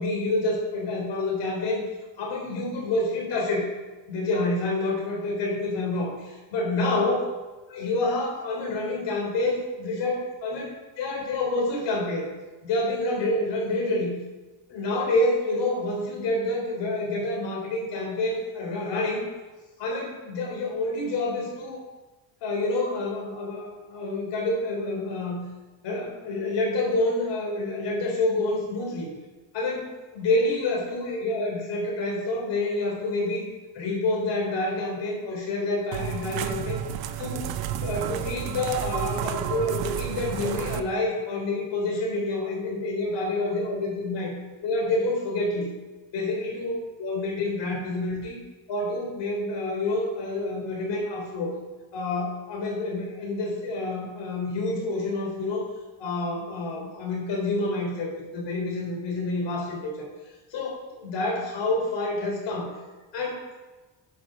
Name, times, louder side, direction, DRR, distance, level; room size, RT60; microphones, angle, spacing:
voice 1, 0.0-1.8 2.2-3.7 4.1-7.2 7.7-12.2 12.6-14.2 14.7-19.3 19.8-21.8 22.4-25.4 25.8-29.1 29.5-33.5 33.7-36.8 37.2-37.5 37.8-44.3 44.6-45.7 46.1-48.4 48.7-51.6 51.9-55.7 56.0-59.9 60.5-62.7 63.1-63.4, left 2 dB, 60° left, -2 dB, 3.8 m, -28 dB
sound 1, 35.9-40.8, right 10 dB, 50° right, 0.7 m, -31 dB
11.0 x 5.4 x 6.3 m, 1.2 s
cardioid pair, 170°, 48 cm